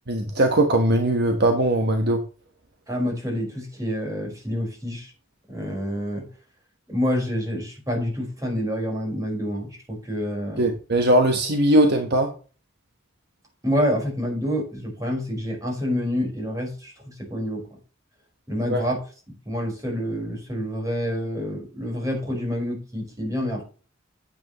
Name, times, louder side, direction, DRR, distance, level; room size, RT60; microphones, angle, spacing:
voice 1, 0.1-2.2 10.6-12.3 18.7-18.8, right 1 dB, 55° right, 4 dB, 1.3 m, -20 dB
voice 2, 2.9-5.1 5.5-6.3 6.9-10.6 13.6-17.7 18.5-19.0 19.4-23.6, equal, 20° right, 0 dB, 4.9 m, -27 dB
9.5 x 8.5 x 3.1 m, 0.36 s
head